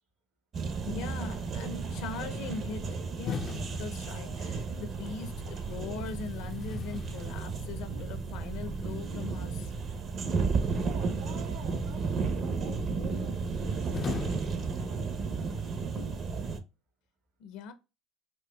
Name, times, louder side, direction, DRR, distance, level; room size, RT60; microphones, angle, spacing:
sound 1, 0.5-16.6, right 4 dB, 40° right, 0.6 m, -33 dB
voice 1, 0.9-9.7 17.4-17.7, left 5 dB, 75° left, 0.7 m, -41 dB
sound 2, 3.3-4.7 6.0-8.1 10.7-11.6 13.9-15.4, left 6 dB, 35° left, 0.3 m, -40 dB
voice 2, 10.5-14.0, right 4 dB, 75° right, 2.1 m, -48 dB
4.4 x 2.5 x 2.2 m
supercardioid pair, 105°, 0 cm